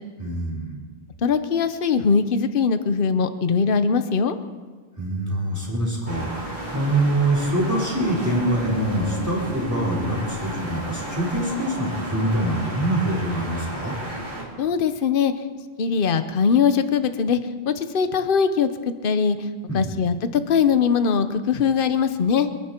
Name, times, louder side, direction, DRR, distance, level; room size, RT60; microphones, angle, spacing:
voice 1, 0.2-0.8 5.0-14.0 19.7-19.9, right 1 dB, 15° right, -4 dB, 4.9 m, -24 dB
voice 2, 1.2-4.4 14.6-15.3 15.8-17.4 17.7-18.7 19.0-19.5 19.7-22.5, left 6 dB, 55° left, 10 dB, 1.0 m, -21 dB
sound 1, 6.1-14.4, equal, 30° right, 4.7 m, -33 dB
28.5 x 10.5 x 4.5 m, 1.4 s
omnidirectional pair, 1.1 m